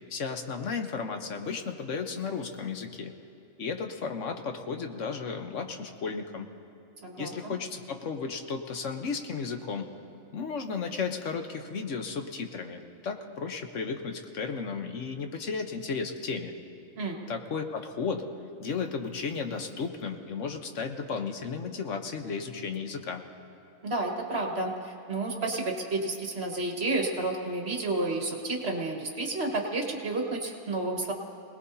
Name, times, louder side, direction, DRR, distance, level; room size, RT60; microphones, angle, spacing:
voice 1, 0.1-3.1 3.6-6.5 7.2-9.9 10.3-16.5 17.3-18.3 18.6-23.2, left 5 dB, 65° left, 5 dB, 1.3 m, -34 dB
voice 2, 7.0-7.5 17.0-17.2 23.8-31.1, right 2 dB, 50° right, 1 dB, 1.8 m, -31 dB
27.0 x 19.0 x 2.8 m, 2.8 s
omnidirectional pair, 1.4 m